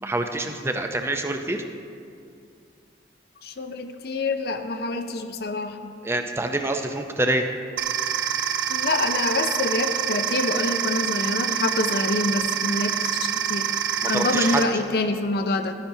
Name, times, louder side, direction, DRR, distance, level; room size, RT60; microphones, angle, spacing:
voice 1, 0.0-1.6 6.0-7.4 14.0-14.6, right 2 dB, 15° right, 5 dB, 0.5 m, -26 dB
voice 2, 3.4-6.0 8.7-13.7 14.1-15.7, left 2 dB, 55° left, 8 dB, 0.5 m, -26 dB
sound 1, 7.8-14.6, right 9 dB, 90° right, 0.6 m, -26 dB
13.0 x 10.0 x 2.7 m, 2.4 s
head